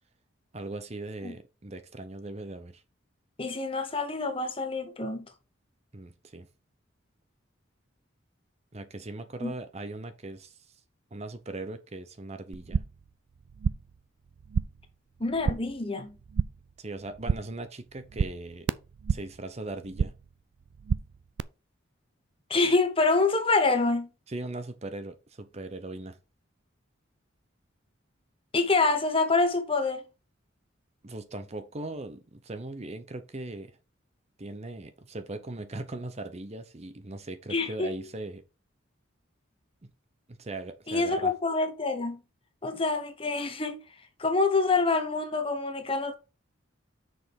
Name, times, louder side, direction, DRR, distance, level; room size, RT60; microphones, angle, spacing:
voice 1, 0.5-2.8 5.9-6.5 8.7-10.8 11.1-12.8 16.8-18.7 19.1-20.1 24.3-26.2 31.0-33.8 34.4-38.4 39.8-39.9 40.3-41.3, right 2 dB, 30° right, 0.7 m, -39 dB
voice 2, 3.4-5.3 9.4-9.5 15.2-16.2 22.5-24.1 28.5-30.0 37.5-38.0 40.9-42.2 42.6-43.8 44.2-46.1, left 3 dB, 25° left, 1.1 m, -26 dB
sound 1, 12.5-13.1 13.4-14.0 14.3-14.9 15.2-15.8 16.1-16.7 17.0-17.6 17.9-19.4 19.7-20.3 20.6-21.4, right 5 dB, 60° right, 0.4 m, -31 dB
6.3 x 4.9 x 5.2 m
head